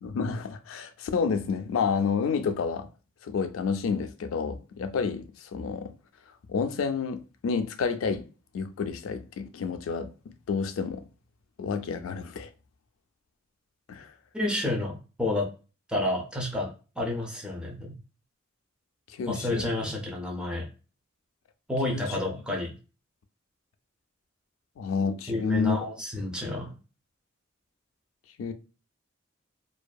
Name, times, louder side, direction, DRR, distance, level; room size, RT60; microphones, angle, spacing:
voice 1, 0.0-2.9 3.2-5.9 6.5-8.2 8.5-10.1 10.5-11.0 11.6-12.5 13.9-14.1 19.1-19.7 21.9-22.1 24.8-25.9 28.4-28.5, left 5 dB, 75° left, 0.3 m, -29 dB
voice 2, 14.3-15.5 15.9-18.0 19.3-20.7 21.7-22.8 25.3-26.8, left 2 dB, 5° right, 0.5 m, -30 dB
2.6 x 2.3 x 2.2 m
head